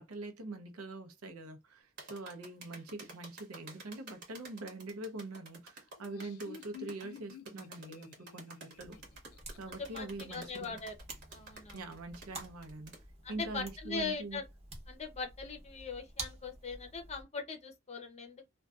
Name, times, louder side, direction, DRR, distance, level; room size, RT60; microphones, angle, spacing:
voice 1, 0.0-9.0 9.6-10.8 11.7-12.9 13.3-14.4, right 2 dB, 80° right, 0.6 m, -44 dB
sound 1, 2.0-13.0, right 3 dB, 55° right, 1.0 m, -51 dB
Laughter, 5.9-10.5, left 8 dB, 85° left, 0.3 m, -52 dB
sound 2, 8.8-17.2, right 2 dB, 30° right, 0.8 m, -50 dB
voice 2, 9.7-10.9 11.3-11.8 13.2-14.4 14.9-18.5, left 4 dB, 30° left, 0.6 m, -41 dB
2.5 x 2.2 x 2.3 m
head